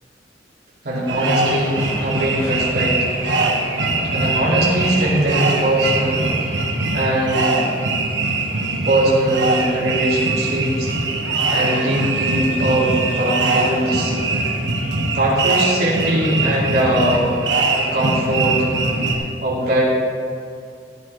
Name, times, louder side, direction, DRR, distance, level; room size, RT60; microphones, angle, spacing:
voice 1, 0.8-2.9 4.1-6.6 6.9-7.6 8.7-10.9 11.5-14.1 15.1-17.3 17.7-18.7 19.4-19.8, right 1 dB, 60° right, -8 dB, 2.6 m, -21 dB
sound 1, 1.0-7.2, equal, 15° left, 2.5 m, -37 dB
sound 2, 1.1-19.2, right 3 dB, 80° right, 1.3 m, -22 dB
sound 3, 1.6-8.7, equal, 15° right, 2.7 m, -37 dB
13.5 x 11.5 x 3.3 m, 2.3 s
head